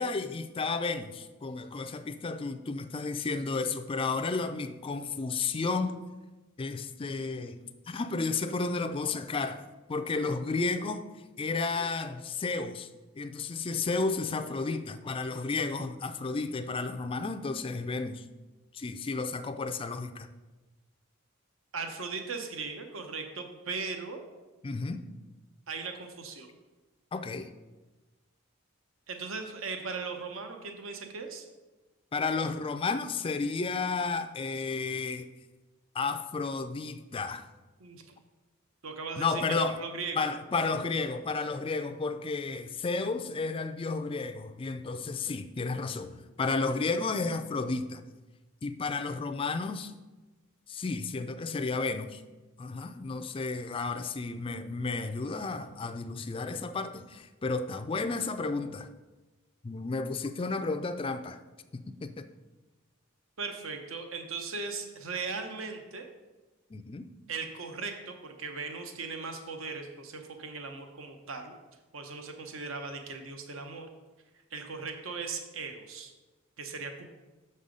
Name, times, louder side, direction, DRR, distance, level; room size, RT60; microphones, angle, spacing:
voice 1, 0.0-6.0 6.6-9.6 9.9-11.0 11.4-12.9 13.2-18.3 18.7-20.3 24.6-25.0 27.1-27.5 32.1-35.3 35.9-37.5 39.2-39.8 40.2-48.0 48.6-49.9 50.7-52.2 52.6-58.9 59.6-61.4 61.7-62.3 66.7-67.1, left 4 dB, 25° left, 0.4 m, -32 dB
voice 2, 21.7-24.2 25.7-26.5 29.1-31.4 37.8-38.2 38.8-39.4 39.8-40.3 63.4-66.1 67.3-71.5 71.9-73.9 74.5-76.1 76.6-77.1, right 4 dB, 65° right, 0.8 m, -38 dB
6.7 x 5.5 x 5.1 m
head